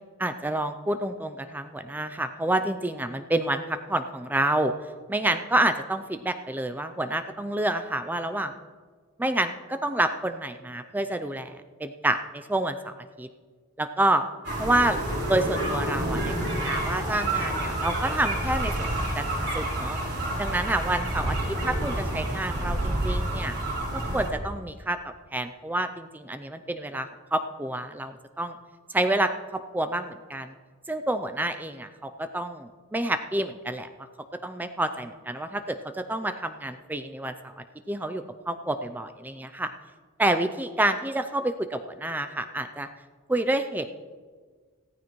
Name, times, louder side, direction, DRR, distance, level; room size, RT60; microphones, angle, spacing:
voice 1, 0.2-4.7 5.1-8.5 9.2-13.3 13.8-14.3 14.6-15.0 15.3-18.7 19.1-20.0 20.4-23.6 23.9-28.6 28.9-30.5 30.9-33.9 34.4-37.5 37.9-39.7 40.2-42.9 43.3-43.9, right 1 dB, 10° right, 9 dB, 0.4 m, -28 dB
sound 1, 14.4-24.3, right 1 dB, 55° right, 3.9 m, -29 dB
15.5 x 13.5 x 3.1 m, 1.5 s
head